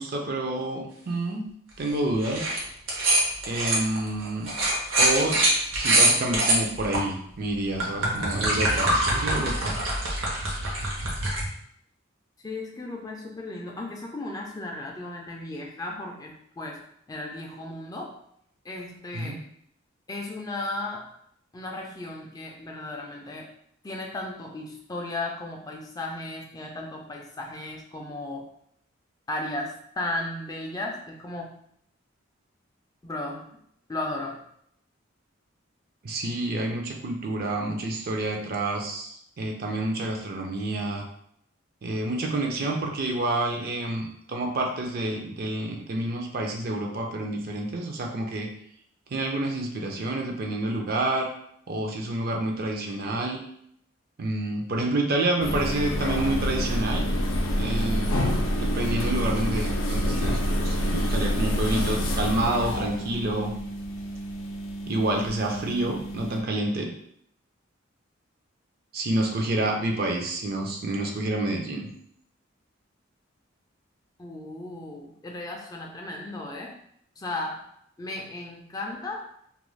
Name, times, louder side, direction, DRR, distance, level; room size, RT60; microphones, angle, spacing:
voice 1, 0.0-1.4 1.8-2.5 3.5-4.5 5.0-5.4 5.7-9.8 19.1-19.4 36.0-41.0 41.8-48.5 49.1-51.3 51.7-53.4 54.2-57.0 57.6-58.2 58.6-63.5 64.9-66.9 68.9-71.9, right 2 dB, 50° right, 1 dB, 0.5 m, -28 dB
sound 1, 2.2-2.6 2.9-7.0 7.5-11.4, right 1 dB, 75° right, 0.8 m, -24 dB
voice 2, 12.4-18.2 18.7-19.4 20.1-21.1 21.5-23.5 23.8-28.5 29.3-31.6 33.0-33.6 33.9-34.4 74.2-76.8 77.2-77.7 78.0-79.3, left 2 dB, 20° left, 0 dB, 0.3 m, -35 dB
sound 2, 55.4-66.4, equal, 80° left, 0.4 m, -27 dB
2.4 x 2.2 x 3.1 m, 0.70 s
head